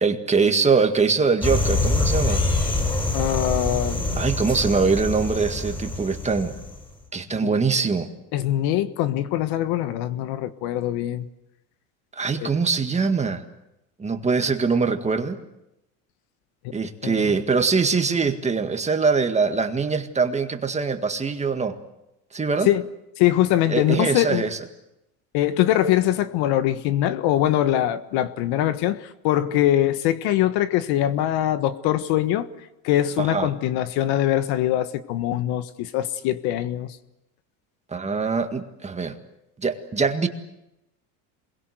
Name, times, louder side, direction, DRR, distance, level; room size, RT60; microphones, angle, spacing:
voice 1, 0.0-2.4 4.1-6.5 7.1-8.1 12.1-13.4 14.0-15.4 16.7-21.8 22.3-22.7 23.7-24.6 33.2-33.5 37.9-39.2 39.6-40.3, right 4 dB, 15° right, 1.9 m, -23 dB
sound 1, 1.4-6.8, left 2 dB, 10° left, 6.1 m, -25 dB
voice 2, 3.1-4.3 7.4-7.5 8.3-11.3 12.4-12.5 16.6-16.7 17.0-17.3 22.6-22.9 23.2-24.5 25.3-32.5 32.8-37.0, left 13 dB, 65° left, 1.5 m, -23 dB
27.5 x 22.0 x 8.0 m
supercardioid pair, 130°, 41 cm